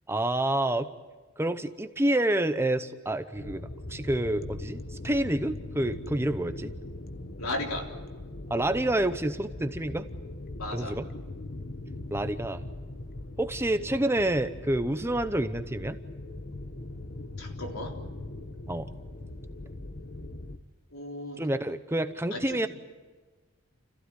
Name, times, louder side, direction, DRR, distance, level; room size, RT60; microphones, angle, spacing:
voice 1, 0.1-0.9 1.4-6.7 8.5-10.1 10.7-11.1 12.1-12.6 13.4-16.0 18.7-18.9 21.4-22.7, right 1 dB, 10° right, 10 dB, 0.8 m, -28 dB
sound 1, 3.3-20.6, left 2 dB, 45° left, 1.1 m, -40 dB
voice 2, 7.4-7.9 10.5-11.0 17.4-18.0 20.9-21.4 22.3-22.6, left 1 dB, 85° left, 1 dB, 3.8 m, -35 dB
29.5 x 15.5 x 9.7 m, 1.3 s
head